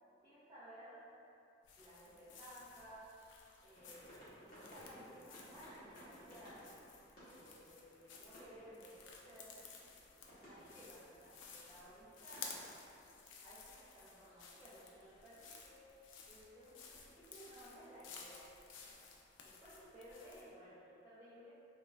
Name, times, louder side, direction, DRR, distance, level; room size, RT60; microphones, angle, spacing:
voice 1, 0.2-1.1 1.8-3.1 3.6-6.7 7.1-9.6 10.4-13.0 13.4-15.9 16.3-19.1 19.4-21.5, equal, 20° right, -13 dB, 0.5 m, -57 dB
sound 1, 1.6-20.5, left 5 dB, 80° left, 0.3 m, -56 dB
sound 2, 3.7-12.8, equal, 50° left, 0.8 m, -60 dB
2.2 x 2.2 x 3.1 m, 2.6 s
head